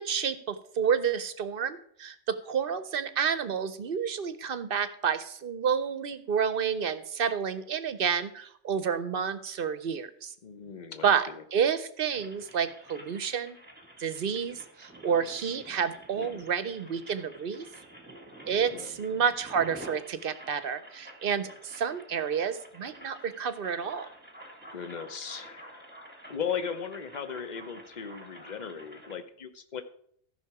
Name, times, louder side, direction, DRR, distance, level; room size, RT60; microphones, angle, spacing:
voice 1, 0.0-10.3 11.0-13.6 14.0-17.7 18.4-24.1, right 7 dB, 60° right, 13 dB, 0.8 m, -30 dB
voice 2, 10.4-11.1 11.4-11.5 16.2-16.4 18.7-18.9 24.7-25.9 26.3-29.8, left 7 dB, 45° left, 9 dB, 0.9 m, -37 dB
sound 1, 12.1-29.2, right 1 dB, 10° right, 1.7 m, -49 dB
14.0 x 5.8 x 4.8 m, 0.64 s
omnidirectional pair, 1.2 m